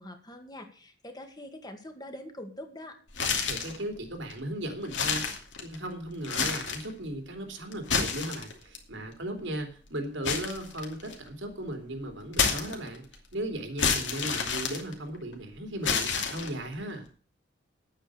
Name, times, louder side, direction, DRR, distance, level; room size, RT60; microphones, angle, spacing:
voice 1, 0.0-3.0, left 1 dB, 20° left, 5 dB, 1.9 m, -44 dB
sound 1, 3.1-3.8 4.3-4.4 4.8-5.9 6.2-6.9 7.7-8.8 10.2-11.3 12.3-13.1 13.8-15.3 15.8-16.7, left 5 dB, 85° left, 2.6 m, -29 dB
voice 2, 3.5-5.2 5.6-13.0 13.3-17.1, right 1 dB, 85° right, 4 dB, 3.4 m, -36 dB
10.0 x 9.1 x 6.5 m, 0.39 s
head